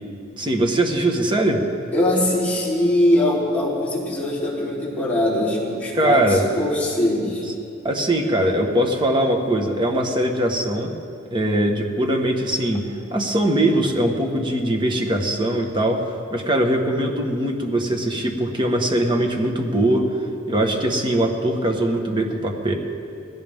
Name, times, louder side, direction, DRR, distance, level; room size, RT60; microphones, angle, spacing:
voice 1, 0.4-1.6 5.9-6.4 7.8-10.9 11.3-20.1 20.5-22.7, right 1 dB, 25° right, 2 dB, 1.4 m, -21 dB
voice 2, 1.9-7.5, left 1 dB, 10° left, -7 dB, 3.6 m, -21 dB
19.5 x 16.5 x 3.6 m, 2.5 s
head